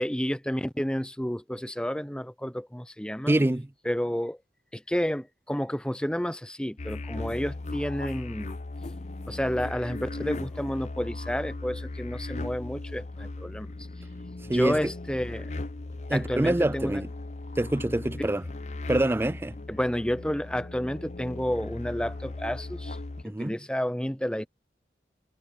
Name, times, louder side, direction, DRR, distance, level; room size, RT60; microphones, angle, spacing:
voice 1, 0.0-3.4 3.9-4.4 4.7-8.6 9.3-13.7 14.5-15.5 16.1-17.0 18.2-18.3 19.7-23.0 23.2-24.5, equal, 5° left, 0.8 m, -30 dB
voice 2, 3.3-3.7 14.5-14.9 16.1-17.1 17.6-18.5 18.9-19.6 23.2-23.5, right 1 dB, 15° right, 0.3 m, -25 dB
sound 1, 6.8-23.2, left 2 dB, 40° left, 0.7 m, -37 dB
head